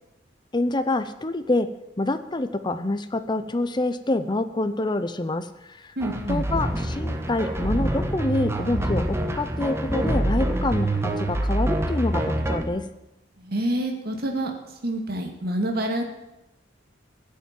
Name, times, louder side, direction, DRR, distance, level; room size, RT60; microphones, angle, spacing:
voice 1, 0.5-1.7 2.0-5.9 6.3-12.9, left 2 dB, 25° left, 10 dB, 0.7 m, -26 dB
sound 1, 6.0-12.6, right 1 dB, 15° right, 1.3 m, -26 dB
voice 2, 6.0-6.5 13.4-14.5 14.8-16.0, right 1 dB, 55° right, 3 dB, 2.5 m, -27 dB
16.0 x 7.3 x 9.2 m, 0.92 s
head